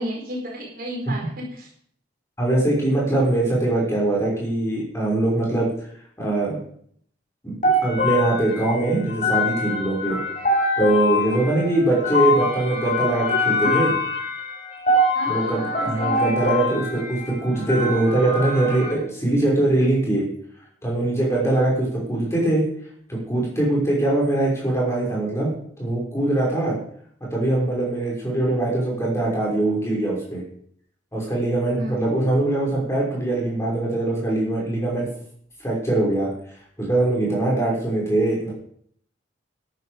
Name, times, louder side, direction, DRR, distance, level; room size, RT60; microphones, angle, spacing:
voice 1, 0.0-1.7 15.1-16.6 31.8-32.0 37.2-37.6, equal, 50° right, -1 dB, 4.4 m, -33 dB
voice 2, 2.4-5.7 6.2-6.6 7.4-7.5 7.8-10.2 10.8-13.9 15.3-20.2 20.8-22.6 23.1-25.5 25.8-26.8 27.3-30.4 31.1-35.1 35.6-36.3 36.8-38.5, right 2 dB, 15° left, -4 dB, 5.7 m, -22 dB
sound 1, 7.6-18.9, left 2 dB, 40° left, 7.2 m, -24 dB
13.0 x 11.0 x 5.1 m, 0.62 s
head